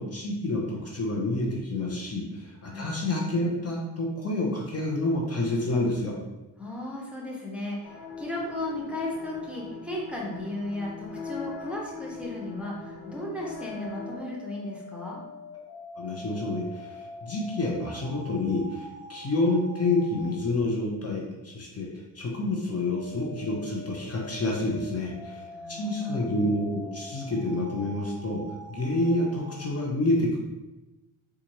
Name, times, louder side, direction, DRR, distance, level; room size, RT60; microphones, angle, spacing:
voice 1, 0.0-6.1 15.9-28.4 28.7-30.4, left 2 dB, 30° left, -2 dB, 0.8 m, -28 dB
voice 2, 6.6-15.2 25.5-26.3, left 1 dB, ahead, -4 dB, 0.8 m, -35 dB
sound 1, 7.8-14.2, left 4 dB, 80° left, 1.0 m, -40 dB
sound 2, 13.0-20.3 22.4-29.7, left 1 dB, 50° left, 1.4 m, -44 dB
4.1 x 2.5 x 3.0 m, 1.0 s
supercardioid pair, 70°, 46 cm